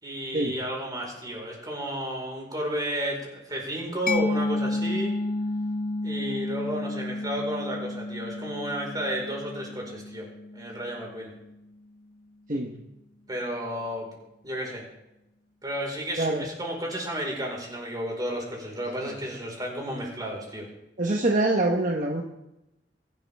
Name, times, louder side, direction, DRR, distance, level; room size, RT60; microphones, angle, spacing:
voice 1, 0.0-5.1 6.0-10.3 10.5-11.3 13.3-14.1 14.4-14.8 15.6-20.7, equal, 25° right, -1 dB, 4.7 m, -32 dB
Mallet percussion, 4.1-11.5, left 2 dB, 50° left, 0.9 m, -31 dB
voice 2, 16.2-16.5 21.0-22.2, right 2 dB, 45° right, 1 dB, 1.2 m, -24 dB
23.0 x 12.0 x 3.6 m, 0.91 s
head